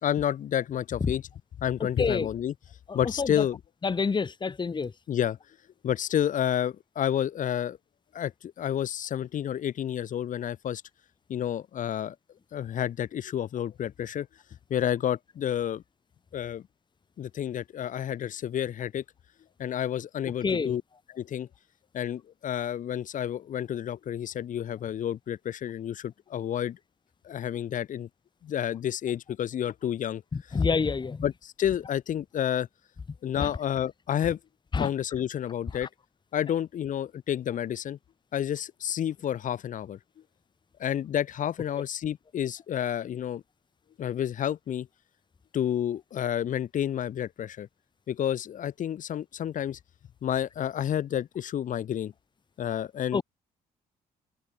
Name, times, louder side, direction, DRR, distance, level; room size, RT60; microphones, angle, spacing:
voice 1, 0.0-1.3 1.6-2.5 2.9-3.6 5.1-5.4 5.8-7.8 8.1-10.8 11.3-12.1 12.5-14.3 14.7-15.8 16.3-16.7 17.2-19.0 19.6-20.8 21.1-21.5 21.9-26.8 27.2-28.1 28.4-30.2 30.5-30.6 31.2-32.7 33.2-34.4 34.8-35.9 36.3-38.0 38.3-40.0 40.8-43.4 44.0-44.9 45.5-47.7 48.1-49.8 50.2-52.1 52.6-53.2, left 10 dB, 60° left, 3.4 m, -30 dB
voice 2, 2.9-3.3 3.8-4.9 20.4-20.8 30.5-31.2 33.4-33.5 34.7-34.9 35.8-35.9 53.1-53.2, left 5 dB, 30° left, 2.2 m, -27 dB
supercardioid pair, 80°, 15 cm